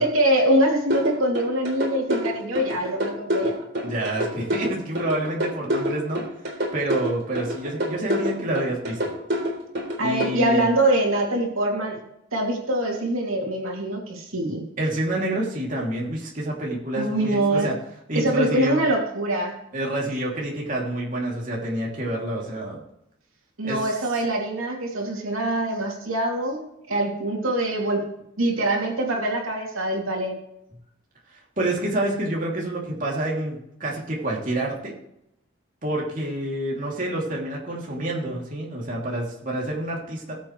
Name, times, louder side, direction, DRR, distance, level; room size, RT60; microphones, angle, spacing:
voice 1, 0.0-4.0 10.0-12.0 12.3-14.7 17.0-17.7 18.1-19.5 23.6-26.6 26.9-28.0 28.4-30.3, right 1 dB, 85° right, 0 dB, 2.8 m, -24 dB
sound 1, 0.9-10.3, equal, 55° right, 3.6 m, -26 dB
voice 2, 3.8-9.1 10.0-10.7 14.8-17.7 18.1-18.8 19.7-22.8 23.6-23.9 31.6-34.9 35.8-40.4, right 1 dB, 40° right, -3 dB, 2.8 m, -28 dB
19.5 x 7.5 x 3.2 m, 0.80 s
head